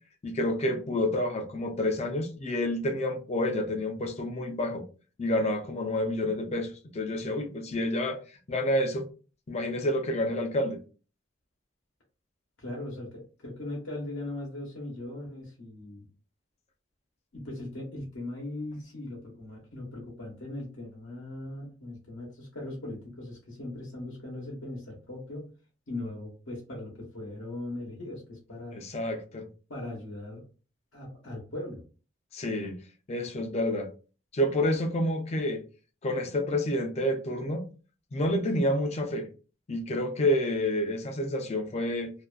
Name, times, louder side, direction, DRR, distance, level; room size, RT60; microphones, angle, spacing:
voice 1, 0.2-4.8 5.2-8.2 8.5-9.1 9.5-10.8 28.7-29.5 32.3-32.7 33.1-33.9 34.3-35.6 36.0-37.6 38.1-39.3 39.7-42.1, left 1 dB, 30° left, 0.4 m, -29 dB
voice 2, 12.6-16.1 17.3-25.5 25.9-28.8 29.7-30.5 30.9-31.8, left 1 dB, 75° left, 0.8 m, -39 dB
2.5 x 2.2 x 2.3 m
head